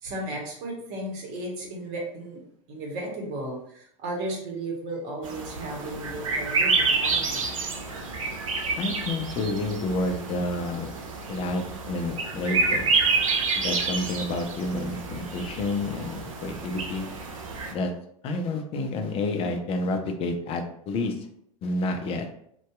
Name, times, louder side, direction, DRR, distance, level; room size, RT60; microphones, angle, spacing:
voice 1, 0.0-2.4 2.7-7.5 18.5-18.6, right 1 dB, 50° right, -1 dB, 0.9 m, -35 dB
sound 1, 5.2-17.7, right 4 dB, 75° right, 0.5 m, -28 dB
voice 2, 8.8-10.9 11.3-12.9 13.5-17.1 17.7-17.9 18.2-21.1 21.6-22.3, left 2 dB, 35° left, 5 dB, 0.4 m, -29 dB
2.6 x 2.2 x 2.2 m, 0.68 s
hypercardioid pair, 85°, 17 cm